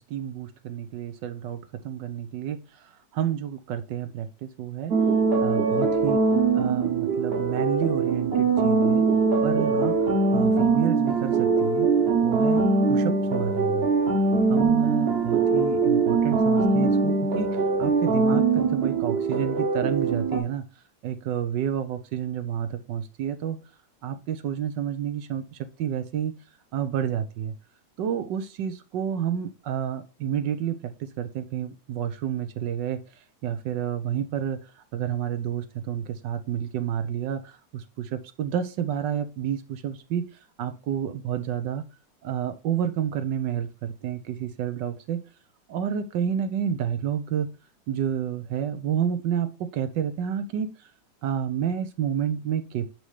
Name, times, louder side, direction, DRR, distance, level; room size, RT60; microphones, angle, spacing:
voice 1, 0.1-1.6 1.8-2.6 3.1-4.9 5.4-6.2 6.5-9.0 9.4-10.0 10.3-11.9 12.2-13.8 14.5-17.5 17.8-20.6 21.0-23.6 24.0-26.3 26.7-27.5 28.0-30.9 31.2-33.0 33.4-34.6 34.9-40.2 40.6-41.8 42.2-45.2 45.7-47.5 47.9-50.7 51.2-52.9, right 9 dB, 85° right, 10 dB, 1.5 m, -29 dB
sound 1, 4.9-20.4, right 4 dB, 40° right, 1.0 m, -22 dB
6.2 x 5.5 x 3.2 m, 0.31 s
omnidirectional pair, 1.9 m